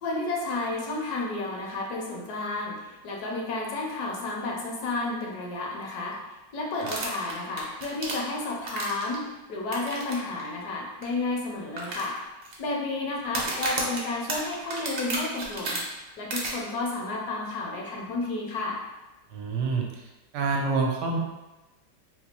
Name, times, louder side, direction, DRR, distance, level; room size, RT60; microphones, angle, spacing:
voice 1, 0.0-12.2 12.6-15.8 16.2-18.8, left 2 dB, 70° left, -2 dB, 1.1 m, -31 dB
sound 1, 6.8-9.2 9.7-10.1 10.4-10.5 11.0-11.1 11.8-12.5 13.2-15.8 16.3-16.5, right 2 dB, 60° right, 0.7 m, -32 dB
voice 2, 19.3-19.8 20.3-21.2, right 4 dB, 80° right, 1 dB, 1.2 m, -26 dB
4.1 x 2.3 x 2.9 m, 1.1 s
omnidirectional pair, 1.9 m